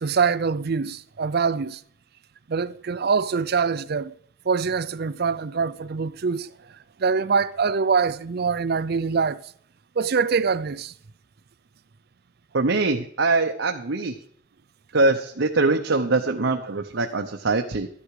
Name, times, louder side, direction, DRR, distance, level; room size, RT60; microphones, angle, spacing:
voice 1, 0.0-1.8 2.5-4.1 4.5-6.5 7.0-9.4 10.0-10.9, right 5 dB, 55° right, 0.5 m, -24 dB
voice 2, 12.5-14.2 14.9-17.9, right 3 dB, 80° right, 0.9 m, -23 dB
12.5 x 10.0 x 4.8 m
head